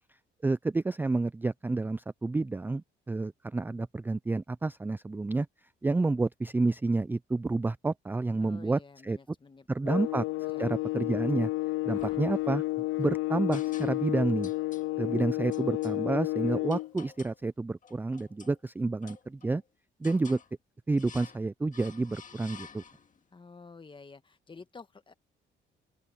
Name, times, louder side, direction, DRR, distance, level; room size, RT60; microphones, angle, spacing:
voice 1, 0.4-5.5 5.8-9.2 9.7-10.3 10.6-11.5 11.8-14.5 15.0-19.6 20.0-20.4 20.9-22.8, right 3 dB, 10° right, 0.3 m, -29 dB
voice 2, 8.4-10.1 10.4-10.6 11.9-12.3 23.3-25.1, left 4 dB, 25° left, 1.4 m, -51 dB
sound 1, 9.9-16.9, left 19 dB, 85° left, 0.4 m, -31 dB
sound 2, 12.0-12.9 13.5-14.2 14.4-14.9 15.5-16.0 16.7-17.4 17.8-18.6 19.0-19.6 20.0-20.5 21.0-21.4 21.7-23.2, left 6 dB, 40° left, 1.9 m, -51 dB
open air
cardioid pair, 90°, 20 cm